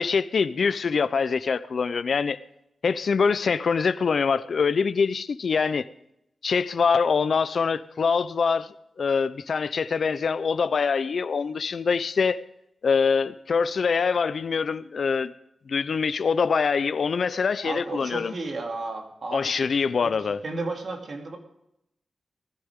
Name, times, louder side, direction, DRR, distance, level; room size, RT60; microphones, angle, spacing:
voice 1, 0.0-2.4 2.8-5.9 6.4-12.4 12.8-15.3 15.7-18.3 19.3-20.4, left 5 dB, 65° left, 0.7 m, -24 dB
voice 2, 17.6-19.6 20.0-20.2 20.4-21.4, right 3 dB, 60° right, 2.8 m, -33 dB
19.5 x 15.0 x 3.7 m
wide cardioid pair, 90°, 0 cm